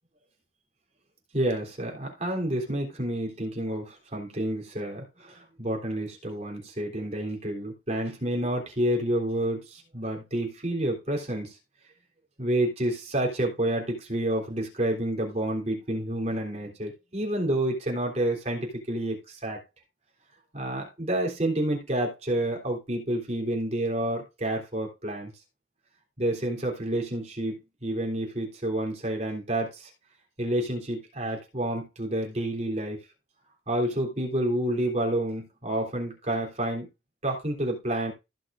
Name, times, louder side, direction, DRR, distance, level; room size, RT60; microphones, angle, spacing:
voice 1, 1.3-11.6 12.4-19.6 20.5-25.3 26.2-29.9 30.4-33.0 33.7-36.9 37.2-38.1, right 1 dB, 35° right, 3.5 m, -29 dB
15.5 x 6.4 x 2.6 m
head